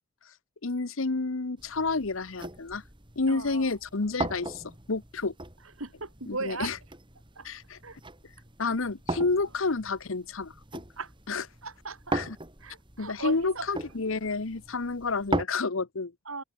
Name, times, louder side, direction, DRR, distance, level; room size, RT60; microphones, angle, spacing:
voice 1, 0.6-2.8 3.2-4.6 4.9-5.3 6.3-6.7 7.4-7.8 8.6-10.8 11.3-11.4 12.1-12.3 13.0-16.1, left 3 dB, 65° left, 1.0 m, -30 dB
sound 1, 1.6-15.4, right 2 dB, 20° right, 3.8 m, -39 dB
voice 2, 3.3-3.8 5.6-6.7 7.3-7.5 7.8-8.0 11.0-11.1 11.6-12.2 12.6-13.7 16.2-16.4, right 3 dB, 75° right, 4.4 m, -38 dB
head